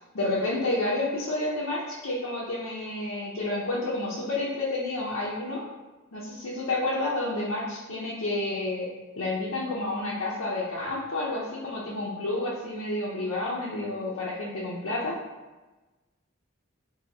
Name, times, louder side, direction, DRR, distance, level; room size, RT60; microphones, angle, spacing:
voice 1, 0.1-5.6 6.1-8.9 9.2-15.1, left 2 dB, 80° left, -7 dB, 0.6 m, -30 dB
2.7 x 2.7 x 3.9 m, 1.2 s
head